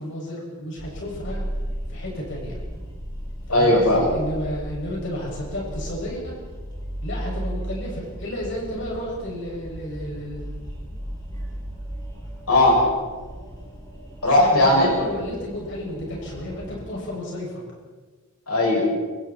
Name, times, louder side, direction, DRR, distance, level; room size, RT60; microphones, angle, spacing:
voice 1, 0.0-1.4 1.9-2.6 3.5-6.4 7.0-10.4 14.4-17.5, equal, 55° left, -3 dB, 6.9 m, -32 dB
sound 1, 0.8-16.7, equal, 20° left, 7.3 m, -35 dB
voice 2, 3.5-4.1 12.5-12.9 14.2-14.9 18.5-18.8, left 1 dB, 80° left, -2 dB, 6.8 m, -17 dB
26.5 x 24.5 x 4.5 m, 1.4 s
head